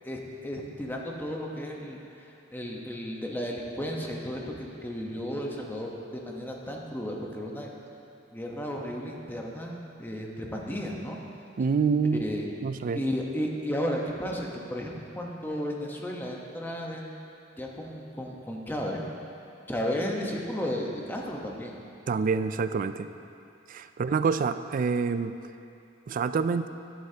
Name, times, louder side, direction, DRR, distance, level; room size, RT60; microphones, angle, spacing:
voice 1, 0.0-7.7 8.3-11.2 12.1-12.5 12.9-17.1 17.6-19.0 19.7-21.7, equal, 10° left, -1 dB, 1.0 m, -34 dB
voice 2, 11.6-12.2 12.6-13.0 22.1-23.1 23.7-25.4 26.1-26.7, right 5 dB, 45° right, 11 dB, 0.3 m, -26 dB
12.5 x 11.0 x 2.8 m, 2.7 s
head